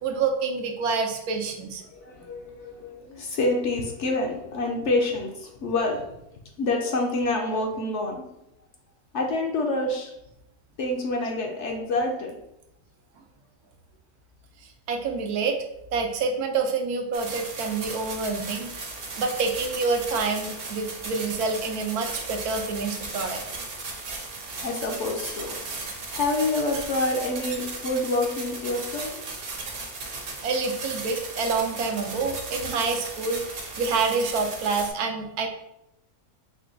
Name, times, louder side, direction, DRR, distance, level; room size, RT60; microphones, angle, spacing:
voice 1, 0.0-1.8 14.9-15.6 15.9-18.7 19.2-23.4 30.4-35.5, right 4 dB, 80° right, 4 dB, 1.1 m, -27 dB
voice 2, 1.9-6.1 6.6-8.2 9.1-10.1 10.8-12.4 24.6-25.6 26.1-29.2, left 2 dB, 60° left, 2 dB, 0.8 m, -27 dB
sound 1, 17.1-34.9, right 3 dB, 50° right, 0.8 m, -36 dB
4.8 x 2.2 x 3.8 m, 0.83 s
omnidirectional pair, 1.6 m